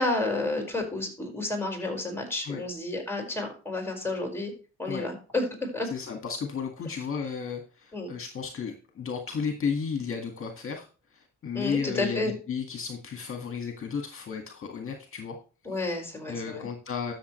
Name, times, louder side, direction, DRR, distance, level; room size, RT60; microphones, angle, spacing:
voice 1, 0.0-4.5 4.8-5.9 7.9-8.1 11.5-12.4 15.7-16.7, left 2 dB, 10° left, 2 dB, 5.2 m, -31 dB
voice 2, 5.9-10.9 11.1-15.4 15.8-15.9 16.3-17.1, left 6 dB, 45° left, 4 dB, 1.9 m, -33 dB
12.5 x 7.0 x 3.2 m, 0.35 s
cardioid pair, 90°, 30 cm